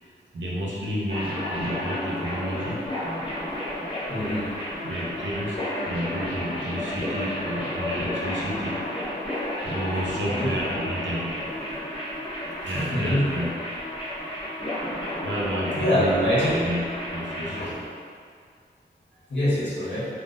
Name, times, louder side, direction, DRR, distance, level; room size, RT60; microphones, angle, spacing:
voice 1, 0.3-2.8 4.8-5.6 5.8-8.8 9.7-11.3 12.6-13.7 14.2-14.3 15.2-17.6, equal, 90° right, -5 dB, 0.7 m, -30 dB
sound 1, 1.1-17.6, left 1 dB, 30° left, 0.8 m, -32 dB
voice 2, 4.1-4.8 10.2-10.5 12.7-13.3 15.7-16.6 17.4-17.8 19.3-20.1, equal, 80° left, -9 dB, 1.1 m, -25 dB
3.6 x 2.3 x 2.6 m, 2.1 s
wide cardioid pair, 125°, 19 cm